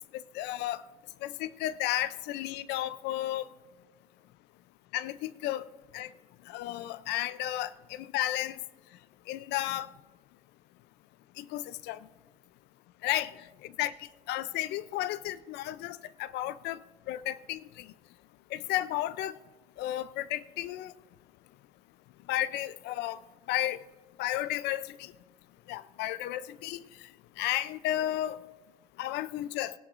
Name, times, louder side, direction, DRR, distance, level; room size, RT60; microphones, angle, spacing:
voice 1, 0.1-0.8 1.2-3.5 4.9-5.7 5.9-6.1 6.5-8.6 9.3-9.9 11.4-12.0 13.0-13.3 13.6-13.9 14.3-16.8 17.1-17.9 18.5-19.4 19.8-20.9 22.3-23.2 23.5-23.8 24.2-25.1 25.7-26.8 27.4-28.4 29.0-29.7, left 14 dB, 85° left, 0.4 m, -33 dB
19.0 x 11.0 x 2.5 m
cardioid pair, 110°, 17 cm